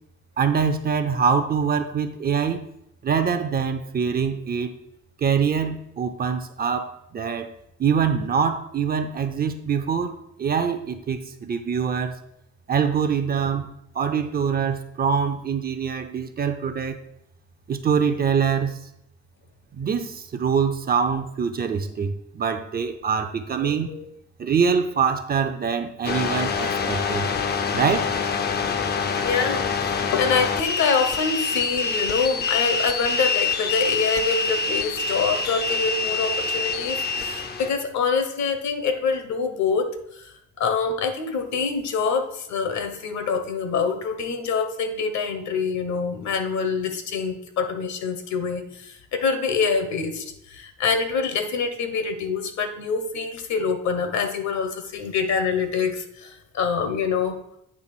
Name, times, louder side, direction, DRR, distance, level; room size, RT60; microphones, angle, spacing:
voice 1, 0.4-2.6 3.0-4.7 5.2-7.5 7.8-10.1 10.4-12.1 12.7-13.7 13.9-17.0 17.7-18.8 19.7-23.9 24.4-27.3 27.7-28.1, right 6 dB, 30° right, 8 dB, 0.6 m, -24 dB
voice 2, 23.6-24.0 29.2-39.9 40.2-40.3 40.6-57.4, left 5 dB, 65° left, 8 dB, 1.2 m, -25 dB
sound 1, 26.0-37.7, left 5 dB, 35° left, 0.6 m, -26 dB
8.9 x 3.4 x 6.0 m, 0.78 s
cardioid pair, 155°, 30 cm